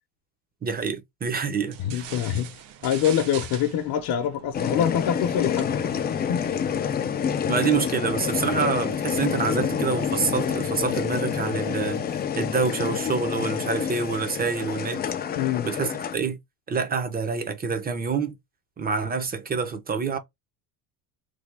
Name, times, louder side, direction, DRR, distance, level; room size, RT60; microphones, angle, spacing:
voice 1, 0.6-2.0 7.5-12.0 12.4-15.0 15.6-16.4 16.7-18.3 18.8-20.2, right 5 dB, 20° right, 0.7 m, -27 dB
sound 1, 1.7-7.0, right 9 dB, 80° right, 1.0 m, -43 dB
voice 2, 1.8-2.6 2.8-5.9 6.3-6.5 15.4-15.7, left 9 dB, 50° left, 0.8 m, -25 dB
sound 2, 4.5-16.2, left 8 dB, 25° left, 0.4 m, -28 dB
3.4 x 2.3 x 3.3 m
cardioid pair, 120°, 45 cm